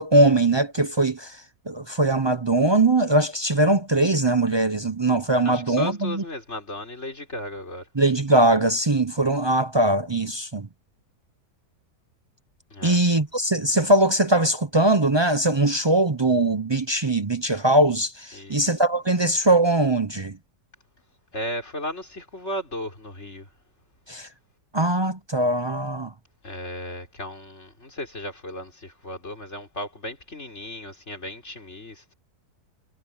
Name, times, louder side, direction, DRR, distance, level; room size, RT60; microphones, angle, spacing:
voice 1, 0.0-1.4 1.7-6.2 8.0-10.7 12.8-20.4 24.1-24.3 24.7-26.1, right 2 dB, 40° right, 0.3 m, -21 dB
voice 2, 5.4-7.9 12.7-13.0 18.3-18.6 21.3-23.5 26.4-32.1, left 1 dB, 45° left, 5.2 m, -35 dB
omnidirectional pair, 1.7 m